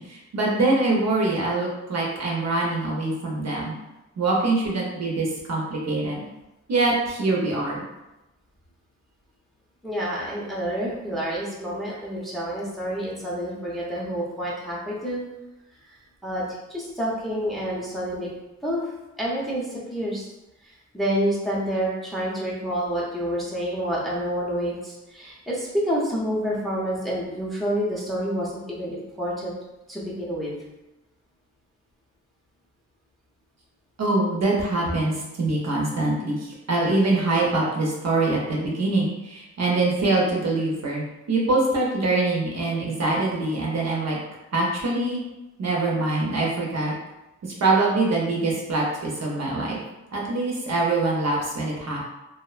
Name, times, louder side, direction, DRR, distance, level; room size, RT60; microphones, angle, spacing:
voice 1, 0.0-3.7 4.2-6.2 6.7-7.8 34.0-44.2 44.5-45.2 45.6-46.9 47.4-49.8 50.1-52.1, right 2 dB, 55° right, -3 dB, 0.6 m, -24 dB
voice 2, 9.8-15.2 15.9-16.0 16.2-18.3 18.6-18.8 19.2-20.2 20.6-29.5 29.9-30.5, equal, ahead, -5 dB, 0.6 m, -28 dB
2.5 x 2.0 x 2.4 m, 0.96 s
wide cardioid pair, 110°, 33 cm